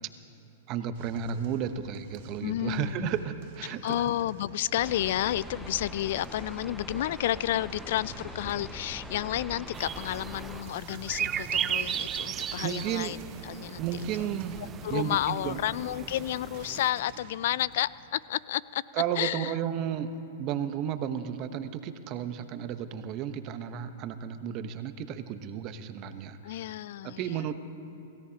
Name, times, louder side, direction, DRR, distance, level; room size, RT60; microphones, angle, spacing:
voice 1, 0.7-4.1 12.6-13.2 13.8-14.6 14.9-15.6 18.9-20.1 20.4-26.7 27.0-27.5, right 9 dB, 40° right, 10 dB, 1.0 m, -33 dB
sound 1, 0.9-17.9, right 3 dB, 60° right, 2.3 m, -49 dB
voice 2, 2.4-3.1 3.8-13.2 13.4-13.9 14.2-14.3 14.6-18.8 19.2-19.6 26.4-27.5, left 13 dB, 65° left, 20 dB, 0.3 m, -31 dB
sound 2, 4.8-10.6, equal, ahead, 0.8 m, -43 dB
sound 3, 9.7-16.9, right 9 dB, 25° right, 0.4 m, -36 dB
28.0 x 16.5 x 2.9 m, 2.8 s
hypercardioid pair, 115°, 0 cm